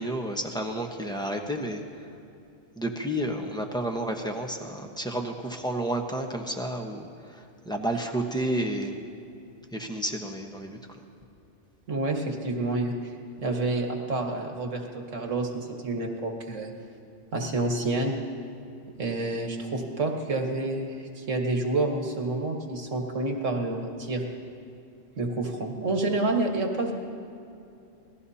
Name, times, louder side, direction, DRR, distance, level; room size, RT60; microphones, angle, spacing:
voice 1, 0.0-1.8 2.8-8.9 9.7-11.0, right 1 dB, 5° left, 2 dB, 1.1 m, -31 dB
voice 2, 11.9-13.1 13.4-16.7 17.3-18.1 19.0-24.2 25.2-26.9, right 2 dB, 85° right, 2 dB, 1.9 m, -28 dB
26.0 x 18.5 x 2.8 m, 2.6 s
omnidirectional pair, 1.3 m